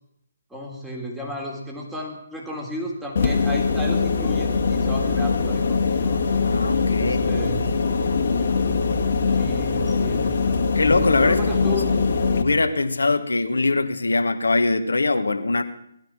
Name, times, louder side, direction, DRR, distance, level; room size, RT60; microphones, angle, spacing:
voice 1, 0.5-6.2 7.0-7.6 9.4-10.4 11.2-12.0, equal, 5° right, -2 dB, 3.4 m, -33 dB
sound 1, 3.2-12.4, left 4 dB, 55° left, 1.9 m, -22 dB
voice 2, 6.4-7.8 10.7-11.7 12.4-15.6, left 3 dB, 80° left, 9 dB, 1.5 m, -22 dB
19.5 x 12.0 x 6.1 m, 0.77 s
figure-of-eight pair, 145°, 0 cm